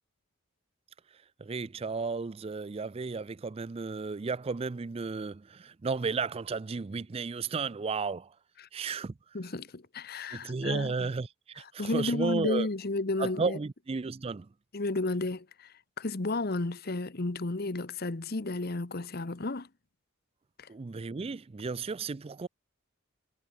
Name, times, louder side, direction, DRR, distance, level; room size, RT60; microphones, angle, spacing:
voice 1, 1.4-8.3 8.7-9.1 10.3-12.7 13.2-14.5 20.7-22.5, right 4 dB, 30° right, 0.4 m, -33 dB
voice 2, 9.3-11.1 11.8-13.6 14.7-19.7 20.6-20.7, left 2 dB, 50° left, 1.0 m, -32 dB
head